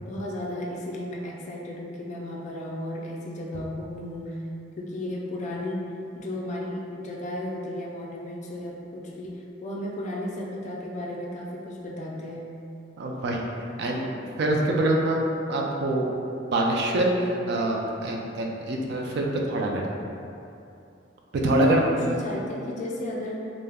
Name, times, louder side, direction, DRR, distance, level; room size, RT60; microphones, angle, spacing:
voice 1, 0.1-4.4 4.8-12.5 21.4-23.5, left 1 dB, 40° left, -2 dB, 0.3 m, -34 dB
voice 2, 13.0-13.4 13.8-15.2 15.5-16.1 16.5-19.8 21.4-21.8, right 2 dB, 60° right, 0 dB, 0.3 m, -25 dB
2.2 x 2.0 x 3.4 m, 2.6 s
head